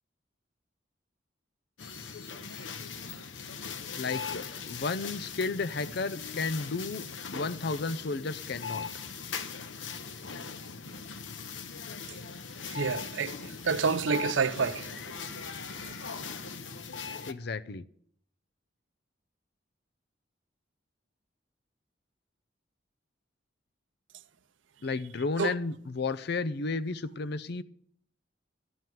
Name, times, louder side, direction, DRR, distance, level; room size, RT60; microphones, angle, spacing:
sound 1, 1.8-17.3, left 5 dB, 85° left, 1.0 m, -40 dB
voice 1, 4.0-7.0 7.3-8.9 17.2-17.8 24.8-27.6, left 3 dB, 60° left, 0.5 m, -33 dB
voice 2, 12.7-15.2 15.7-15.9 25.4-25.5, right 5 dB, 90° right, 0.7 m, -29 dB
13.5 x 6.1 x 9.3 m
head